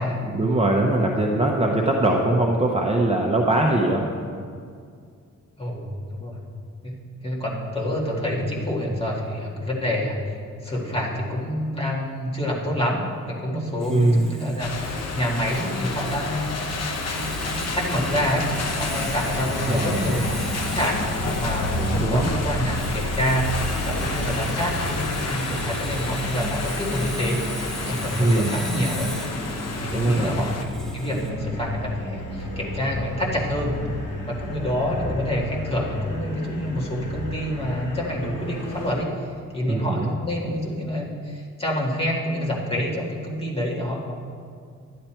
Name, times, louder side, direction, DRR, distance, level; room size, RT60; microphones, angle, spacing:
voice 1, 0.2-4.1 13.9-14.3 19.7-20.1 21.8-22.3 28.2-28.6 29.9-30.5 39.7-40.1, right 2 dB, 20° right, 0 dB, 0.7 m, -22 dB
voice 2, 5.6-6.4 6.8-10.4 10.6-16.5 17.1-17.3 17.5-18.4 18.8-23.5 23.9-29.1 29.8-33.8 34.3-39.1 39.5-44.1, equal, 20° left, -4 dB, 1.8 m, -27 dB
Sawing, 13.8-31.3, right 1 dB, ahead, 1.0 m, -38 dB
sound 1, 14.6-30.6, left 2 dB, 55° left, 0.8 m, -29 dB
sound 2, 23.7-38.9, left 1 dB, 80° left, 2.8 m, -34 dB
11.0 x 10.5 x 4.4 m, 2.2 s
wide cardioid pair, 165°, 31 cm